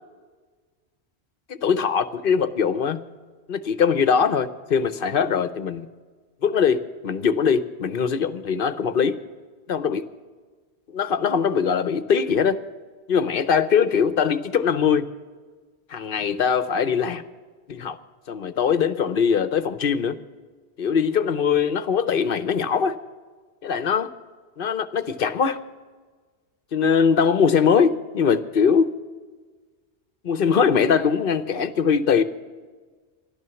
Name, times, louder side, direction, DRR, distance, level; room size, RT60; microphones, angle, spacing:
voice 1, 1.5-3.0 3.5-5.9 6.4-9.2 9.7-10.0 10.9-12.6 13.1-15.0 15.9-17.2 17.7-18.0 18.3-20.2 20.8-23.0 23.6-24.1 24.6-25.6 26.7-28.9 30.2-32.2, left 6 dB, 60° left, 13 dB, 0.9 m, -21 dB
14.0 x 11.5 x 6.9 m, 1.4 s
omnidirectional pair, 1.1 m